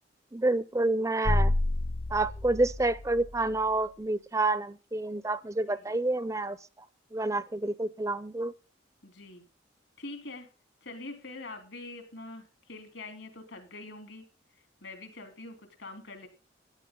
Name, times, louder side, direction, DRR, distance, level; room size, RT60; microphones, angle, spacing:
voice 1, 0.3-1.5 2.1-6.6 7.1-8.5, right 2 dB, 15° right, 16 dB, 0.5 m, -28 dB
sound 1, 1.3-3.7, left 1 dB, 45° left, 0.6 m, -29 dB
voice 2, 9.0-9.4 10.0-10.5 10.8-14.3 14.8-16.3, left 2 dB, 75° left, 7 dB, 3.3 m, -44 dB
14.0 x 10.5 x 3.8 m, 0.32 s
head